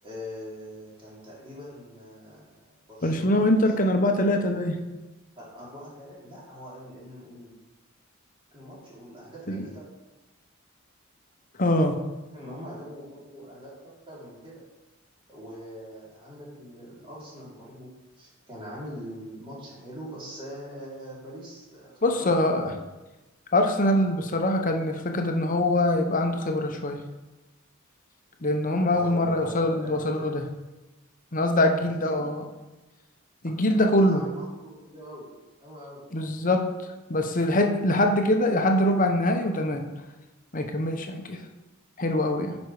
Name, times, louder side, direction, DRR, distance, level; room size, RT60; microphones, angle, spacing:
voice 1, 0.0-3.9 5.3-7.5 8.5-9.9 12.3-14.6 15.3-22.8 28.9-30.3 31.8-32.3 33.8-35.3 35.6-36.0, equal, 25° right, -7 dB, 3.2 m, -42 dB
voice 2, 3.0-4.8 9.5-9.6 11.6-12.0 22.0-22.7 23.5-27.0 28.4-30.4 31.3-32.4 33.4-34.2 36.1-36.7 37.1-39.9 40.5-41.4 42.0-42.6, left 1 dB, 40° left, 5 dB, 0.9 m, -23 dB
9.5 x 5.3 x 4.8 m, 1.1 s
head